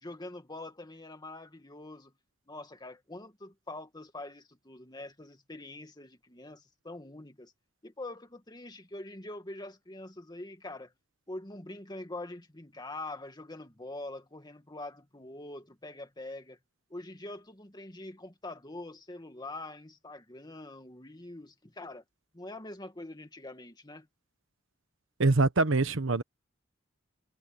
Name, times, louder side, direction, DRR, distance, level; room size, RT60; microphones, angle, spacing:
voice 1, 0.0-2.1 2.5-7.5 7.8-10.9 11.3-16.6 16.9-22.0 22.3-24.1, left 2 dB, 20° left, 2.2 m, -44 dB
voice 2, 25.2-26.2, right 3 dB, 80° right, 1.1 m, -24 dB
head